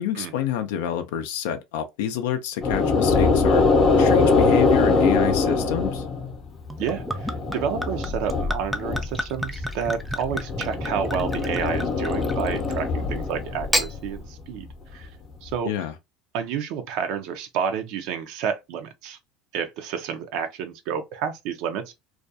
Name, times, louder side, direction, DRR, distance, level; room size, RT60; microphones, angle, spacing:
voice 1, 0.0-3.6 4.0-6.0 15.6-15.9, left 10 dB, 85° left, 0.4 m, -28 dB
sound 1, 2.6-6.4 6.7-9.1 9.5-14.2, left 3 dB, 35° left, 0.6 m, -22 dB
Gurgling / Chink clink / Liquid, 6.7-12.9 13.5-13.9, equal, ahead, 0.3 m, -31 dB
voice 2, 6.8-14.7 14.9-15.1 15.4-15.9 16.3-19.2 19.5-21.9, right 7 dB, 65° right, 0.4 m, -30 dB
2.3 x 2.2 x 2.6 m
supercardioid pair, 130°, 0 cm